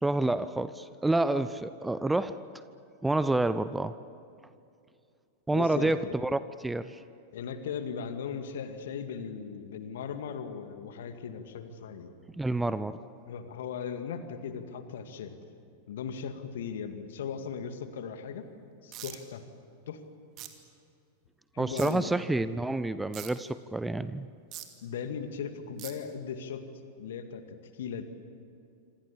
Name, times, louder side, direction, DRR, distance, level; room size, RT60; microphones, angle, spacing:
voice 1, 0.0-2.4 3.0-3.9 5.5-7.0 12.4-13.0 21.6-24.3, right 2 dB, 5° right, 14 dB, 0.7 m, -28 dB
voice 2, 5.5-6.1 7.3-12.1 13.3-15.4 15.9-18.5 18.8-19.4 19.9-20.0 21.5-22.1 24.8-26.6 27.0-28.0, left 7 dB, 60° left, 8 dB, 2.2 m, -38 dB
sound 1, 18.9-19.2 20.4-20.5 21.8-21.9 23.1-23.3 24.5-24.6 25.8-25.9, right 14 dB, 35° right, 2.6 m, -41 dB
27.0 x 26.5 x 7.4 m, 2.5 s
figure-of-eight pair, 90°, 0 cm